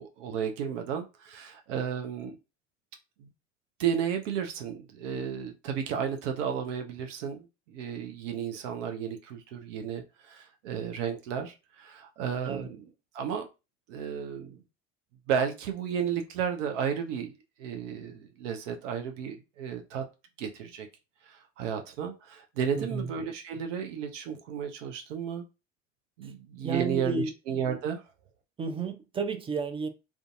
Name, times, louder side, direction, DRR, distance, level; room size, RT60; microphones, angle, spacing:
voice 1, 0.0-2.3 3.2-3.3 3.8-12.9 13.1-13.5 13.9-14.6 15.3-20.0 20.4-20.9 21.2-25.4 26.2-28.0, right 7 dB, 70° right, 0.6 m, -33 dB
voice 2, 22.8-23.1 26.6-27.3 28.6-29.9, right 4 dB, 15° right, 0.3 m, -32 dB
2.5 x 2.3 x 2.5 m
hypercardioid pair, 65°, 38 cm